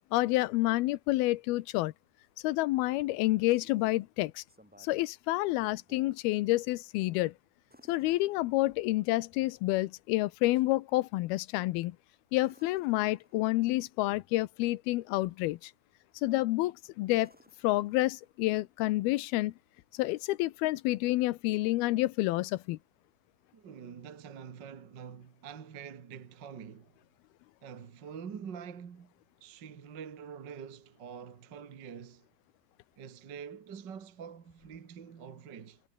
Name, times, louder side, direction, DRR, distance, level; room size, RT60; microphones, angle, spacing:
voice 1, 0.1-1.9 2.4-4.4 4.8-7.3 7.9-12.0 12.3-15.7 16.2-17.3 17.6-19.5 19.9-22.8, left 18 dB, 85° left, 2.6 m, -29 dB
sound 1, 3.1-4.0 4.5-5.1 5.5-6.2 7.7-9.0 12.4-13.7 16.2-16.5 17.0-18.4 20.6-20.7, equal, ahead, 7.1 m, -62 dB
voice 2, 23.5-27.0 27.6-29.1 29.4-32.3 33.0-35.8, right 7 dB, 45° right, 1.5 m, -46 dB
omnidirectional pair, 4.5 m